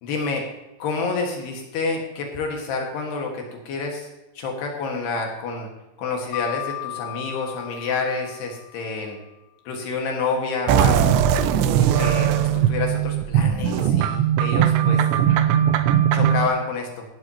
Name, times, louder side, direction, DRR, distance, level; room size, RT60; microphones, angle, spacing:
voice 1, 0.0-0.4 0.8-4.1 4.3-5.7 6.0-9.2 9.7-11.2 11.8-15.0 16.1-17.0, left 4 dB, 70° left, 1 dB, 3.5 m, -28 dB
Mallet percussion, 6.3-9.1, left 19 dB, 90° left, 3.1 m, -35 dB
sound 1, 10.7-16.5, right 9 dB, 85° right, 3.0 m, -19 dB
16.5 x 12.0 x 2.9 m, 1.0 s
omnidirectional pair, 5.3 m